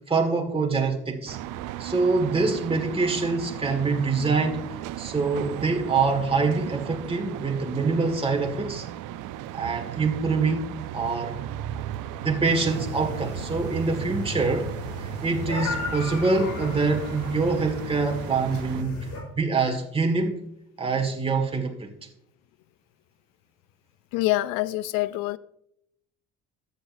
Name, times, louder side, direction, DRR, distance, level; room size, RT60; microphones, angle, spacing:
voice 1, 0.1-1.4 1.8-8.9 9.5-11.4 12.2-14.7 15.0-19.1 19.3-20.4 20.8-21.9, right 4 dB, 15° right, 1.7 m, -25 dB
sound 1, 1.3-18.8, right 12 dB, 70° right, 0.6 m, -36 dB
sound 2, 12.5-19.2, left 2 dB, 55° left, 3.7 m, -35 dB
voice 2, 24.1-25.4, left 17 dB, 75° left, 0.5 m, -25 dB
13.5 x 8.2 x 2.6 m
supercardioid pair, 70°, 33 cm